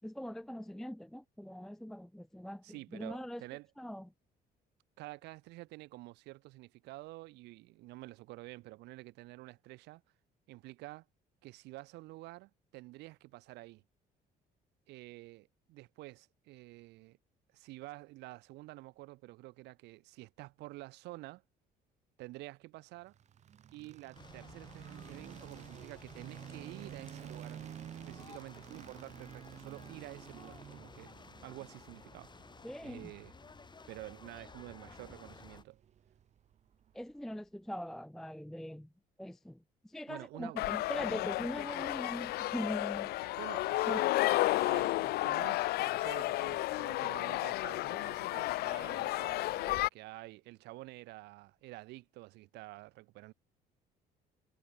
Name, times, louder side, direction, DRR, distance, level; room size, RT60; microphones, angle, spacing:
voice 1, 0.0-2.6 2.9-3.4 3.8-4.1 32.6-33.1 36.9-38.9 39.2-43.1 43.9-44.0, equal, ahead, 0.4 m, -41 dB
voice 2, 2.6-3.7 5.0-10.0 10.5-11.1 11.4-13.8 14.9-17.2 17.5-21.4 22.2-23.1 23.7-31.1 31.4-33.3 33.9-35.8 40.1-40.6 43.4-44.1 44.6-53.3, right 20 dB, 90° right, 3.3 m, -49 dB
sound 1, 23.1-37.2, right 9 dB, 45° right, 0.7 m, -51 dB
sound 2, 24.1-35.6, left 4 dB, 25° left, 5.9 m, -55 dB
sound 3, 40.6-49.9, left 18 dB, 70° left, 0.4 m, -32 dB
cardioid pair, 110°, 17 cm